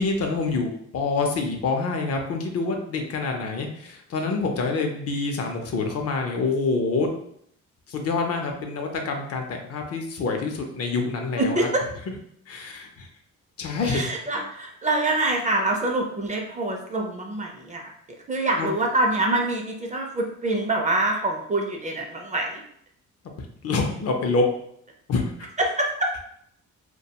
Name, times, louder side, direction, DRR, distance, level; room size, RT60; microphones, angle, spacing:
voice 1, 0.0-7.1 7.9-11.7 12.5-13.1 13.6-14.0 18.6-18.7 23.6-24.5 25.1-25.2, left 3 dB, 55° left, 3 dB, 0.5 m, -26 dB
voice 2, 11.4-11.8 13.8-17.9 18.3-22.6 25.6-26.1, right 2 dB, 25° right, 1 dB, 0.5 m, -25 dB
2.3 x 2.2 x 2.8 m, 0.70 s
cardioid pair, 90°, 30 cm